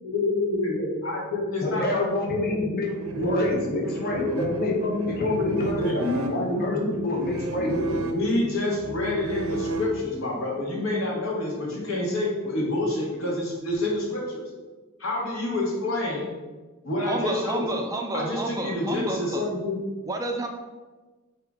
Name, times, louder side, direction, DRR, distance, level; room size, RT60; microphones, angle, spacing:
voice 1, 0.0-2.6 3.2-3.9 4.2-6.0 6.5-7.0 7.6-14.4 15.0-16.3 16.8-17.6 18.1-19.8, left 2 dB, 75° left, -3 dB, 1.3 m, -27 dB
voice 2, 1.6-4.8 5.0-7.7, left 2 dB, 45° left, -1 dB, 0.8 m, -28 dB
sound 1, 2.9-10.4, right 2 dB, 85° right, 0.5 m, -34 dB
voice 3, 17.0-19.4 20.1-20.5, right 2 dB, 15° right, 3 dB, 0.3 m, -30 dB
4.9 x 2.8 x 3.6 m, 1.2 s
head